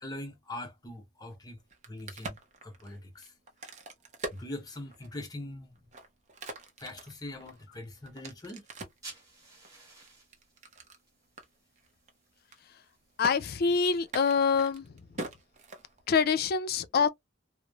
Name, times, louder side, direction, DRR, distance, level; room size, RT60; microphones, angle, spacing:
voice 1, 0.0-1.6 1.9-3.3 4.3-5.8 6.8-8.6, left 1 dB, 20° left, 0.7 m, -42 dB
Crack, 1.6-5.3 5.8-9.1 9.6-11.0 11.4-11.5 11.8-12.1 12.4-12.9 13.2-13.3 14.0-16.2, right 2 dB, 40° right, 0.6 m, -43 dB
sound 1, 8.8-14.0, right 2 dB, 20° right, 1.3 m, -54 dB
voice 2, 13.2-14.9 16.1-17.1, left 5 dB, 50° left, 0.4 m, -25 dB
3.0 x 2.0 x 2.2 m
head